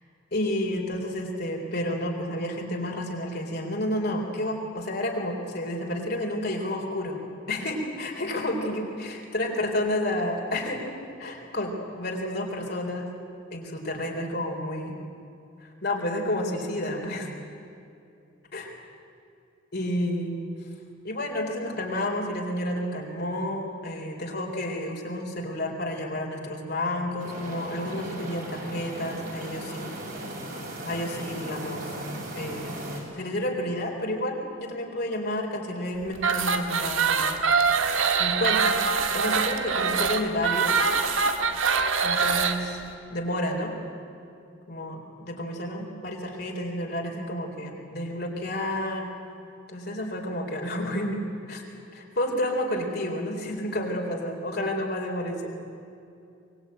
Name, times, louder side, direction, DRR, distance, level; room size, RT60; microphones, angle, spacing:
voice 1, 0.3-7.2 7.5-10.8 11.2-13.1 13.5-15.0 15.6-17.3 18.5-18.6 19.7-20.4 21.0-30.0 30.8-31.9 32.3-32.8 33.1-37.9 38.2-38.8 39.1-40.9 42.0-42.8 43.1-43.8 44.7-45.0 45.3-49.1 49.7-55.5, left 1 dB, 55° left, 0 dB, 3.9 m, -30 dB
sound 1, 27.2-33.0, right 1 dB, 50° right, 5.9 m, -37 dB
sound 2, 36.2-42.6, right 5 dB, 80° right, 1.7 m, -24 dB
24.5 x 21.0 x 9.1 m, 2.6 s
head